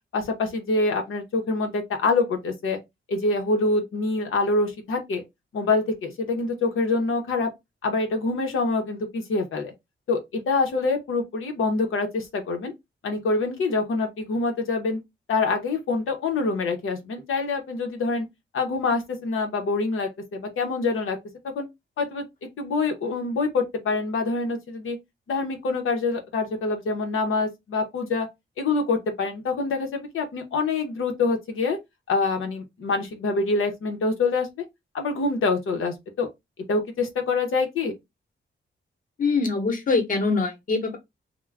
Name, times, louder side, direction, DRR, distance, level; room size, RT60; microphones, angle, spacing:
voice 1, 0.1-2.8 3.1-5.2 5.5-7.5 7.8-9.7 10.1-12.7 13.0-15.0 15.3-18.3 18.5-21.2 21.6-21.7 22.0-22.2 22.6-25.0 25.3-28.3 28.6-31.8 32.1-34.6 34.9-36.3 36.7-37.9, left 3 dB, 85° left, 0.8 m, -25 dB
voice 2, 39.2-41.0, left 4 dB, 40° left, 0.9 m, -23 dB
2.4 x 2.2 x 3.2 m
wide cardioid pair, 135°, 21 cm